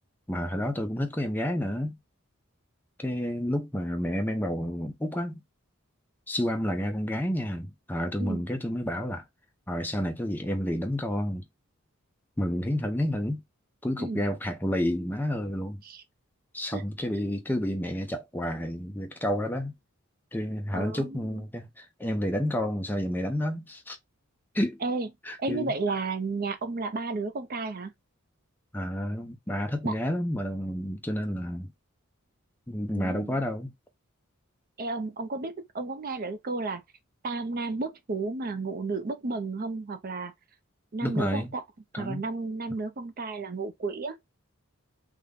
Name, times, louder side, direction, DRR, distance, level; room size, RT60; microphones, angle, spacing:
voice 1, 0.3-2.0 3.0-5.4 6.3-9.2 9.7-11.5 12.4-13.4 13.8-15.8 16.5-19.7 20.3-24.0 24.5-24.8 25.2-25.7 28.7-31.7 32.7-33.7 41.0-41.5 41.9-42.2, equal, 10° left, 0.6 m, -30 dB
voice 2, 20.7-21.4 24.8-25.1 25.4-27.9 29.8-29.9 32.9-33.4 34.8-36.8 37.2-40.3 40.9-41.6 42.0-44.2, right 3 dB, 45° right, 0.5 m, -32 dB
3.6 x 2.1 x 3.5 m
head